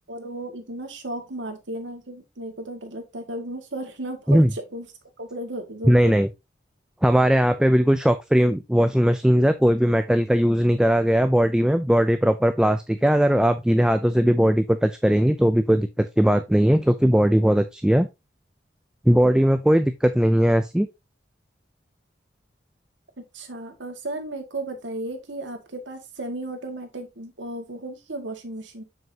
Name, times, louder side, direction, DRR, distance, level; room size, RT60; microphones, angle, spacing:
voice 1, 0.1-4.9 5.2-6.2 23.2-28.8, right 1 dB, 90° right, 1.9 m, -34 dB
voice 2, 5.9-6.3 7.0-18.1 19.1-20.9, equal, 5° right, 0.3 m, -19 dB
7.1 x 6.2 x 2.8 m
head